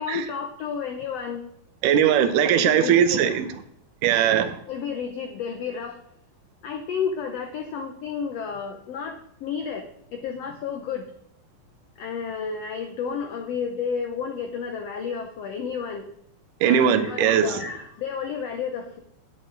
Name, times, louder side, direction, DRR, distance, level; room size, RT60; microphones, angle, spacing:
voice 1, 0.0-1.4 2.4-3.3 4.7-6.0 6.6-11.1 12.0-16.1 16.6-19.0, left 6 dB, 90° left, 1.4 m, -31 dB
voice 2, 1.8-3.5 4.0-4.6 16.6-17.6, right 9 dB, 75° right, 2.2 m, -20 dB
9.9 x 8.9 x 4.0 m
omnidirectional pair, 4.1 m